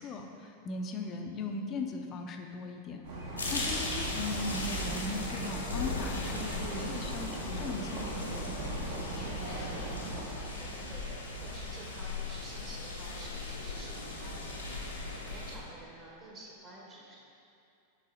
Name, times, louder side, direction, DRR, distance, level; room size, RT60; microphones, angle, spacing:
voice 1, 0.0-3.0 3.3-8.1, left 3 dB, 30° left, 4 dB, 0.5 m, -38 dB
sound 1, 3.0-10.2, right 2 dB, 55° right, 1.2 m, -39 dB
sound 2, 3.4-15.6, left 2 dB, 80° left, 0.8 m, -38 dB
voice 2, 8.6-14.9 15.3-17.2, right 2 dB, 30° right, -4 dB, 1.3 m, -50 dB
6.3 x 3.9 x 3.8 m, 2.6 s
figure-of-eight pair, 90°, 0 cm